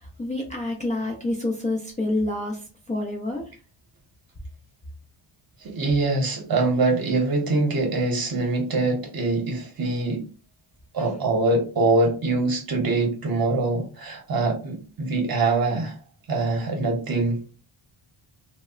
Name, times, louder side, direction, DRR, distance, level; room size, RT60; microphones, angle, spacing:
voice 1, 0.0-3.4 11.0-11.1, left 2 dB, 15° left, 0.4 m, -28 dB
voice 2, 5.6-10.2 10.9-16.0 16.3-17.4, right 3 dB, 50° right, 0.8 m, -24 dB
2.8 x 2.1 x 2.4 m
wide cardioid pair, 135°, 47 cm